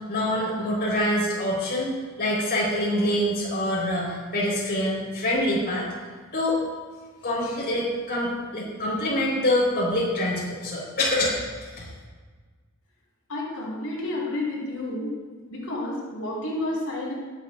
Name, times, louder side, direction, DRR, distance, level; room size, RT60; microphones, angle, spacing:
voice 1, 0.1-5.9 6.3-6.6 7.2-11.9, left 1 dB, 50° left, -5 dB, 4.0 m, -25 dB
voice 2, 13.3-15.1 15.5-17.1, left 1 dB, 75° left, -5 dB, 3.7 m, -30 dB
21.5 x 8.9 x 2.4 m, 1.5 s
head